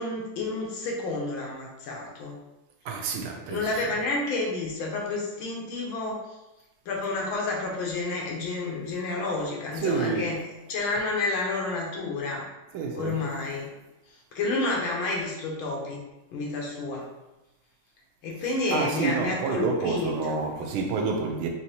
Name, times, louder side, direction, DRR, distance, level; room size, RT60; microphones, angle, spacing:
voice 1, 0.0-2.4 3.5-6.2 6.8-10.4 10.7-12.4 12.9-13.7 14.1-16.0 16.3-17.1 18.2-20.4, left 3 dB, 75° left, 1.7 m, -30 dB
voice 2, 2.8-3.7 9.8-10.4 12.7-13.2 18.7-21.5, right 4 dB, 80° right, 1.4 m, -28 dB
5.1 x 2.8 x 2.8 m
omnidirectional pair, 2.3 m